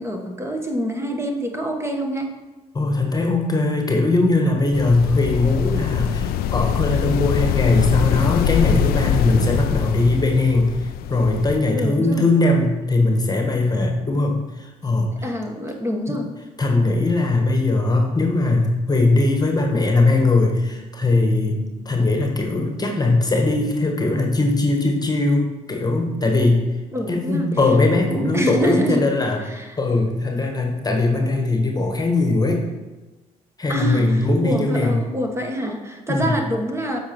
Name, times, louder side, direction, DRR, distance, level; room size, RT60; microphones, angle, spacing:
voice 1, 0.0-2.3 11.7-12.2 15.2-16.3 26.9-27.5 28.1-29.0 29.4-29.8 33.7-37.0, equal, 15° right, 3 dB, 1.3 m, -26 dB
voice 2, 2.7-15.1 16.1-16.2 16.6-25.4 25.7-26.6 27.1-29.4 29.8-32.6 33.6-35.0 36.1-36.4, left 2 dB, 20° left, 1 dB, 1.4 m, -20 dB
sound 1, 4.7-11.6, left 9 dB, 55° left, 0.4 m, -23 dB
13.5 x 5.0 x 3.1 m, 1.1 s
figure-of-eight pair, 45°, 19 cm